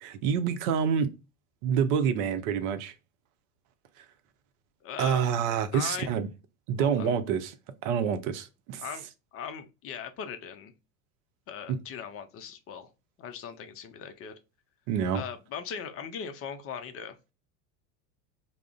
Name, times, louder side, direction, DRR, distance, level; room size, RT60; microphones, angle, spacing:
voice 1, 0.0-1.1 1.6-2.9 5.0-6.3 6.7-7.5 7.8-8.8 11.7-11.8 14.9-15.2, right 7 dB, 60° right, 0.6 m, -27 dB
voice 2, 4.8-5.2 5.7-6.1 6.8-7.1 8.8-9.1 9.3-10.7 11.5-12.9 13.2-14.3 15.1-17.2, left 7 dB, 30° left, 0.4 m, -39 dB
2.3 x 2.0 x 3.5 m
hypercardioid pair, 85°, 48 cm